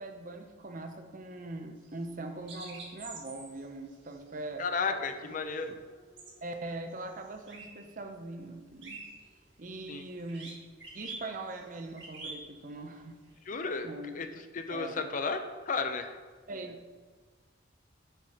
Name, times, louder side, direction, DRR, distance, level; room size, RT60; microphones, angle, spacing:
voice 1, 0.0-4.6 6.4-9.0 9.6-10.6 10.9-13.2 13.5-14.2 14.7-15.1 16.5-16.8, right 2 dB, 45° right, 5 dB, 0.7 m, -41 dB
sound 1, 1.8-7.9 8.2-13.4, right 3 dB, 70° right, 1.5 m, -48 dB
voice 2, 4.6-5.7 9.9-10.0 13.5-13.9 14.1-14.3 14.5-16.2, left 4 dB, 45° left, 8 dB, 0.5 m, -33 dB
7.7 x 4.3 x 4.8 m, 1.4 s
head